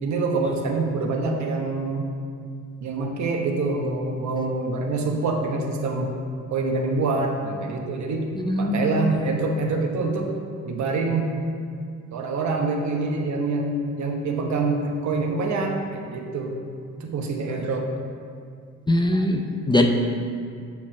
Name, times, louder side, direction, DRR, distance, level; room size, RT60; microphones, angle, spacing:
voice 1, 0.0-2.1 2.8-6.2 6.5-10.3 10.6-11.3 12.1-16.6 17.0-17.9, right 3 dB, 70° right, 2 dB, 1.1 m, -26 dB
voice 2, 8.5-9.1 18.9-19.9, left 1 dB, 15° left, 3 dB, 0.6 m, -21 dB
7.2 x 4.6 x 6.0 m, 2.3 s
cardioid pair, 90°, 30 cm